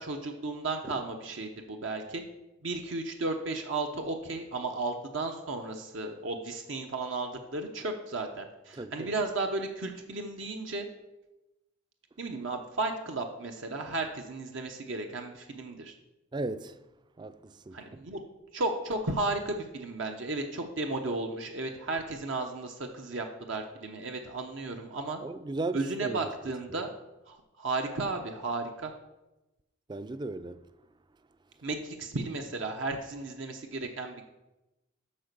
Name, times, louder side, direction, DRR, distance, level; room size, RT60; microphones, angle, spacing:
voice 1, 0.0-2.2 2.6-10.9 12.2-15.9 17.7-18.2 18.5-25.2 25.7-26.9 27.3-28.9 31.6-34.3, right 2 dB, 70° right, 0.9 m, -34 dB
voice 2, 8.7-9.1 16.3-16.8 17.2-18.1 25.2-26.3 26.7-26.8 29.9-30.7, right 2 dB, 20° right, 0.4 m, -36 dB
8.7 x 6.0 x 6.7 m
head